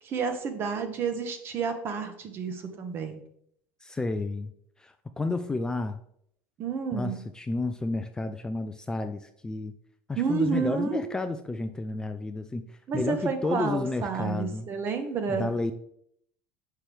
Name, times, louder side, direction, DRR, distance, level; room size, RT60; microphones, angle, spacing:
voice 1, 0.0-3.2 6.6-7.2 10.2-11.1 12.9-15.5, right 5 dB, 40° right, 7 dB, 0.9 m, -30 dB
voice 2, 3.8-4.5 4.8-6.0 6.9-9.7 10.1-14.7 15.3-15.7, left 3 dB, 10° left, 8 dB, 0.3 m, -31 dB
6.0 x 5.7 x 3.3 m, 0.70 s
supercardioid pair, 135°, 6 cm